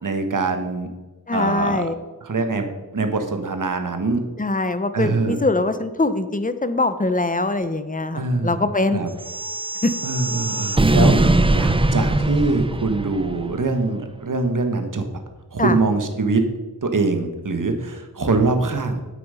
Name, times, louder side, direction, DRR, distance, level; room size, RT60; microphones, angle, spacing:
voice 1, 0.0-0.9 1.3-1.9 2.2-4.2 4.9-5.4 8.1-8.6 8.9-9.1 10.0-15.1 15.5-16.4 16.8-19.0, right 3 dB, 55° right, 6 dB, 1.3 m, -23 dB
voice 2, 1.3-2.0 4.4-9.0 9.8-9.9 15.6-15.8, left 2 dB, 20° left, 11 dB, 0.8 m, -22 dB
sound 1, 9.2-13.5, right 2 dB, 15° right, 0.5 m, -21 dB
8.6 x 8.6 x 5.6 m, 1.2 s
wide cardioid pair, 85°, 38 cm